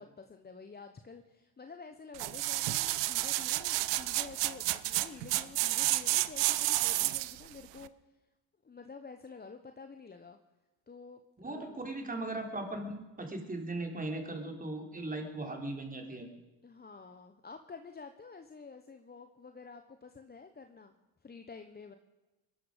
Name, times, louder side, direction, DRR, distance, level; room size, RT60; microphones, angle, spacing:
voice 1, 0.0-7.9 8.6-10.4 10.9-11.2 11.5-11.8 16.6-21.0 21.2-21.9, left 4 dB, 20° left, 7 dB, 1.0 m, -49 dB
sound 1, 2.2-7.4 7.9-8.0, right 18 dB, 70° right, 0.8 m, -30 dB
voice 2, 11.4-16.3, right 2 dB, 20° right, 3 dB, 3.6 m, -38 dB
21.5 x 12.0 x 5.1 m, 1.1 s
supercardioid pair, 80°, 44 cm